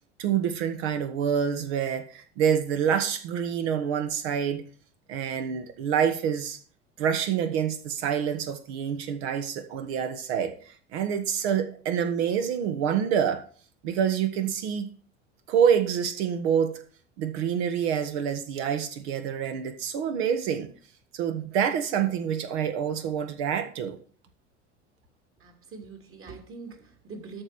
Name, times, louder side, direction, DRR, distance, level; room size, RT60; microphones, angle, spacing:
voice 1, 0.2-4.6 5.1-6.6 7.0-10.5 10.9-13.4 13.8-14.9 15.5-16.8 17.2-20.7 21.1-24.0, right 8 dB, 65° right, 1.7 m, -27 dB
voice 2, 25.4-27.4, right 4 dB, 35° right, 3.0 m, -43 dB
13.0 x 5.0 x 6.0 m
figure-of-eight pair, 70°, 36 cm